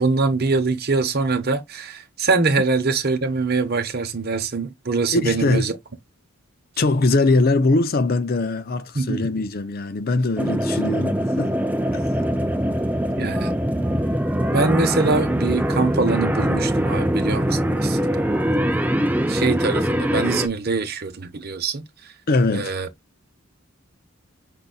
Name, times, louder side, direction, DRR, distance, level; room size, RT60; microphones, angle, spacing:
voice 1, 0.0-5.8 8.9-9.3 13.2-13.5 14.5-18.3 19.3-21.8 22.5-22.9, right 3 dB, 50° right, 0.9 m, -23 dB
voice 2, 5.1-5.6 6.8-11.6 11.9-12.1 22.3-22.7, left 2 dB, 45° left, 0.5 m, -21 dB
sound 1, 10.4-20.5, equal, 10° right, 0.4 m, -22 dB
5.4 x 4.0 x 2.3 m
head